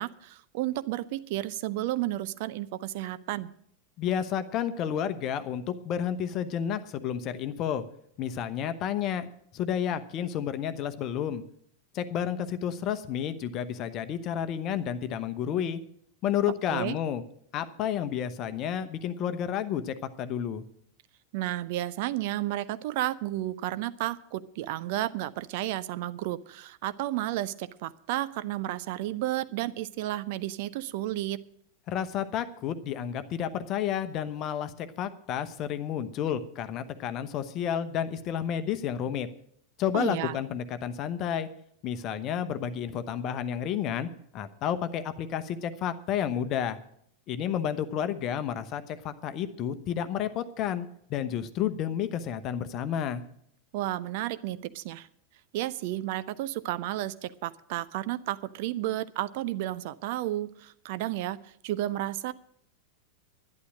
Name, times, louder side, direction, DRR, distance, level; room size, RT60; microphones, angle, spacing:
voice 1, 0.0-3.5 16.7-17.0 21.3-31.4 39.9-40.4 53.7-55.1 55.5-62.3, right 15 dB, 50° right, 15 dB, 0.5 m, -32 dB
voice 2, 4.0-7.8 8.2-9.3 9.5-11.4 11.9-15.8 16.2-17.2 17.5-20.6 31.9-39.3 39.8-41.5 41.8-46.8 47.3-53.2, left 9 dB, 35° left, 11 dB, 0.9 m, -31 dB
11.5 x 10.5 x 6.3 m, 0.67 s
figure-of-eight pair, 90°, 0 cm